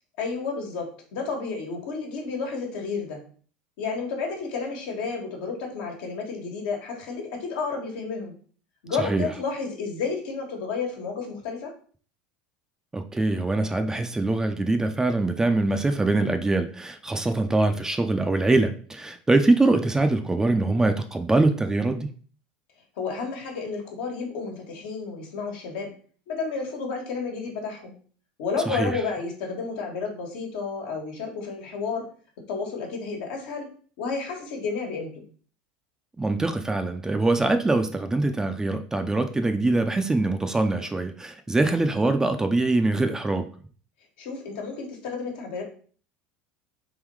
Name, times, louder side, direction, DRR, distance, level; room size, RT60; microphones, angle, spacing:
voice 1, 0.2-3.2 3.8-8.3 8.8-11.7 23.0-25.9 26.3-27.9 28.4-32.1 32.5-33.7 34.0-35.3 44.2-45.6, left 4 dB, 75° left, 1 dB, 1.5 m, -31 dB
voice 2, 9.0-9.3 12.9-22.1 28.7-29.0 36.2-43.5, right 2 dB, 15° right, 7 dB, 0.6 m, -23 dB
3.8 x 3.0 x 4.6 m, 0.43 s
hypercardioid pair, 85°, 4 cm